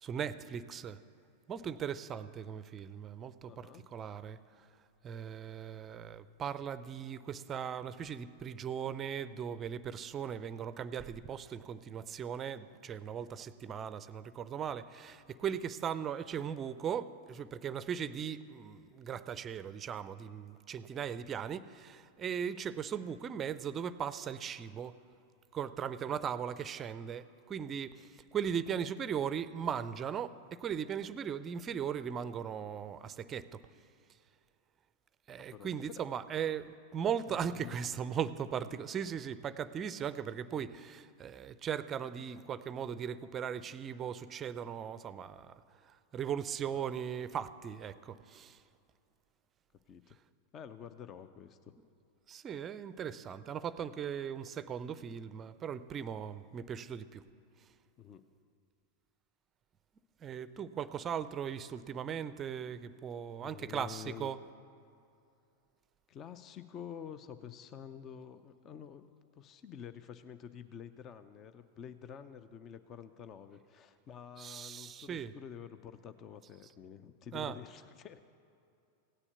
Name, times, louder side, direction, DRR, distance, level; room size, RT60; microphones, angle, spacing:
voice 1, 0.0-1.0 1.5-4.4 5.0-25.0 25.5-33.6 35.3-45.6 45.9-48.6 52.3-57.2 60.2-64.4 74.4-75.3 77.3-77.6, right 8 dB, 25° right, 15 dB, 0.5 m, -38 dB
voice 2, 3.5-3.9 35.5-36.0 37.3-37.7 46.7-46.9 49.9-50.2 50.5-51.7 58.0-58.2 63.4-64.3 66.1-78.2, left 8 dB, 30° left, 12 dB, 0.6 m, -49 dB
16.5 x 9.8 x 8.1 m, 2.5 s
figure-of-eight pair, 90°, 0 cm